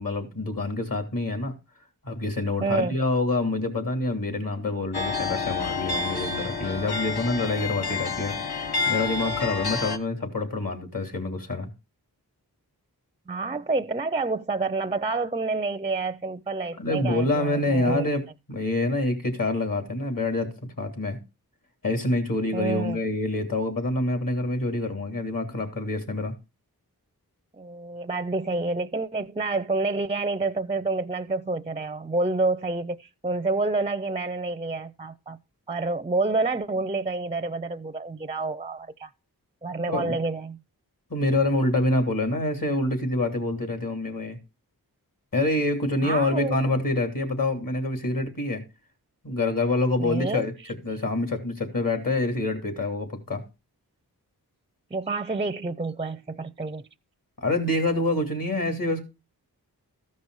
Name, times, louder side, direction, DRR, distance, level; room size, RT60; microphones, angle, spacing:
voice 1, 0.0-1.5 2.0-11.7 16.8-21.2 21.8-26.3 39.9-40.1 41.1-44.4 45.3-48.6 49.2-50.5 50.8-53.4 57.4-59.1, left 2 dB, 60° left, 2.8 m, -26 dB
voice 2, 2.6-3.0 13.3-18.1 22.5-23.0 27.6-35.4 35.7-39.1 39.6-40.6 46.0-46.6 50.0-50.4 54.9-56.9, right 3 dB, 15° right, 0.4 m, -28 dB
sound 1, 4.9-10.0, left 4 dB, 80° left, 1.0 m, -29 dB
14.0 x 5.4 x 4.7 m
cardioid pair, 45°, 38 cm